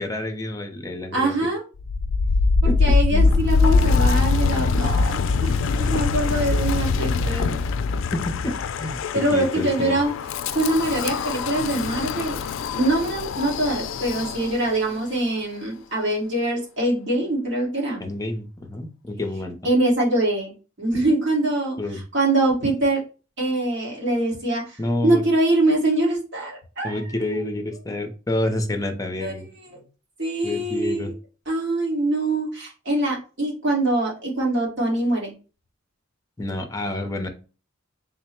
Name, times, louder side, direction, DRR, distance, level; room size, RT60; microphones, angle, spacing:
voice 1, 0.0-1.3 2.6-3.3 8.1-10.0 18.0-19.6 21.8-22.0 24.8-25.2 26.8-29.8 30.4-31.1 36.4-37.3, left 1 dB, 15° left, 5 dB, 0.6 m, -29 dB
voice 2, 1.1-1.6 2.6-7.6 9.1-10.1 10.5-12.4 12.7-18.0 19.6-23.0 23.4-27.0 29.2-29.3 29.7-29.8 30.2-31.1 31.4-35.3, right 2 dB, 65° right, -3 dB, 1.5 m, -24 dB
Wind, 1.8-14.8, left 4 dB, 70° left, 0.3 m, -23 dB
3.6 x 2.0 x 4.3 m, 0.35 s
head